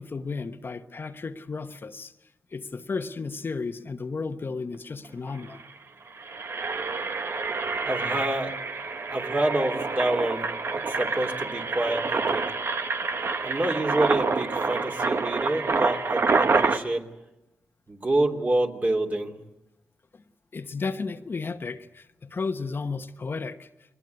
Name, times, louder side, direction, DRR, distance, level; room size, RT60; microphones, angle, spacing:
voice 1, 0.0-2.1 2.5-5.6 20.1-20.2 20.5-23.7, left 4 dB, 45° left, 1.2 m, -33 dB
Engine, 5.0-5.1 5.4-5.6 6.1-16.8, right 4 dB, 55° right, 1.3 m, -27 dB
voice 2, 7.8-8.6 9.1-12.5 13.4-17.1 17.9-19.4, right 1 dB, 35° right, 3.1 m, -27 dB
22.0 x 19.5 x 9.6 m
cardioid pair, 55°, 5 cm